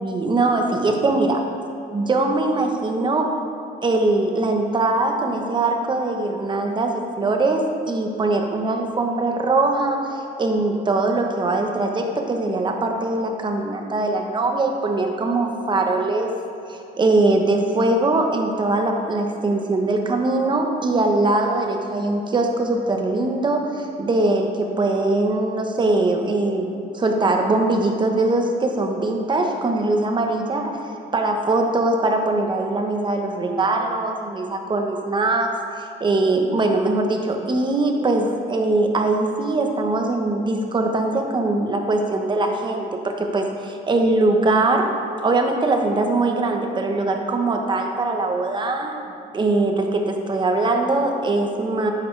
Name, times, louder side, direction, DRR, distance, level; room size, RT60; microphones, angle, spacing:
voice 1, 0.0-1.4 1.9-3.3 3.8-16.3 16.7-30.8 31.1-35.5 35.8-44.9 45.2-51.9, right 2 dB, 25° right, 3 dB, 1.1 m, -21 dB
9.9 x 8.2 x 3.4 m, 2.7 s
cardioid pair, 110°, 17 cm